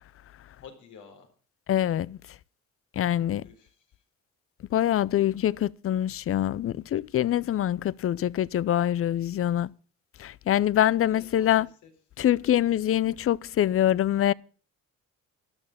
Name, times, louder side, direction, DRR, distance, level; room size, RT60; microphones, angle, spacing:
voice 1, 0.6-1.3 3.4-4.0 11.1-11.9, left 6 dB, 80° left, 4.0 m, -51 dB
voice 2, 1.7-2.2 3.0-3.5 4.7-9.7 10.2-11.7 12.2-14.3, left 11 dB, 50° left, 0.5 m, -24 dB
12.5 x 11.5 x 5.7 m
cardioid pair, 90°, 30 cm